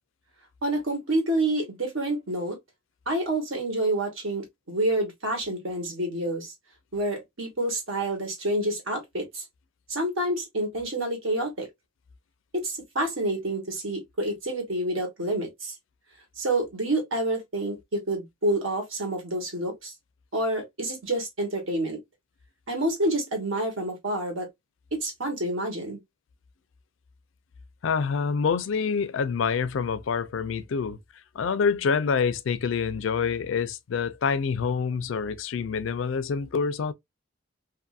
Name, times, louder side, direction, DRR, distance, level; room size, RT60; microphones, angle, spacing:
voice 1, 0.6-2.6 3.1-6.5 6.9-9.4 9.9-11.7 12.5-15.7 16.4-19.9 20.3-22.0 22.7-24.5 25.0-26.0, right 1 dB, 80° right, 1.3 m, -28 dB
voice 2, 27.8-31.0 31.3-36.9, left 6 dB, 70° left, 0.4 m, -26 dB
2.6 x 2.5 x 2.3 m
head